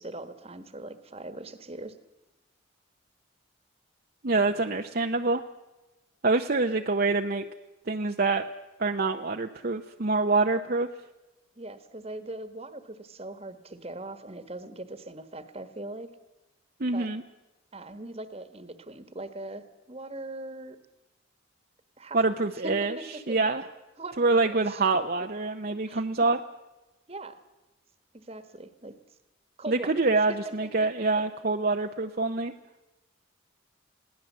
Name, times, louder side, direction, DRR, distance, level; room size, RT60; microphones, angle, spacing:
voice 1, 0.0-2.0 11.5-16.1 16.9-17.1 17.7-20.8 22.0-22.2 22.6-23.4 24.0-24.8 25.2-25.3 25.7-26.0 27.1-27.4 28.1-28.9 29.6-30.9, right 2 dB, 30° right, 11 dB, 1.4 m, -41 dB
voice 2, 4.2-5.4 6.2-7.5 7.9-8.5 8.8-10.9 16.8-17.2 22.1-22.9 23.3-23.6 24.2-26.4 29.7-32.5, right 3 dB, 45° right, 4 dB, 0.8 m, -25 dB
22.0 x 17.0 x 7.4 m, 1.0 s
head